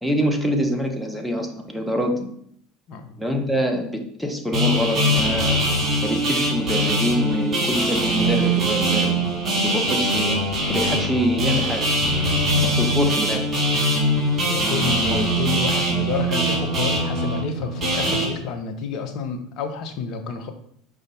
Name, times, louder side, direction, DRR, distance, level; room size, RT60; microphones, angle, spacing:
voice 1, 0.0-2.3 3.2-3.9 4.2-5.6 6.0-10.4 10.7-11.8 12.7-13.5 15.5-15.6, equal, ahead, 2 dB, 0.8 m, -25 dB
sound 1, 4.5-18.3, right 1 dB, 30° right, 1.6 m, -22 dB
voice 2, 14.3-20.5, left 5 dB, 50° left, 6 dB, 0.6 m, -29 dB
5.1 x 2.5 x 4.0 m, 0.67 s
figure-of-eight pair, 75°, 0 cm